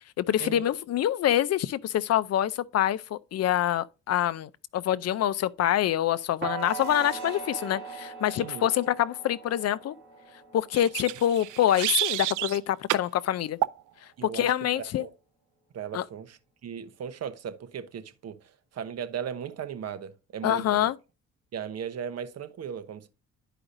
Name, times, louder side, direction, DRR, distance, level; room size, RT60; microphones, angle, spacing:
voice 1, 0.2-9.9 10.5-13.6 14.2-15.0 15.9-16.0 20.4-21.0, left 11 dB, 55° left, 0.5 m, -26 dB
sound 1, 6.4-12.3, right 7 dB, 40° right, 2.3 m, -41 dB
sound 2, 6.6-13.8, left 1 dB, 20° left, 3.7 m, -49 dB
sound 3, 10.7-12.6 12.9-13.1 13.6-13.8, right 17 dB, 85° right, 0.4 m, -29 dB
voice 2, 14.2-15.1 15.7-20.9 21.5-23.1, right 8 dB, 55° right, 1.0 m, -37 dB
11.0 x 5.0 x 2.6 m
cardioid pair, 90°, 30 cm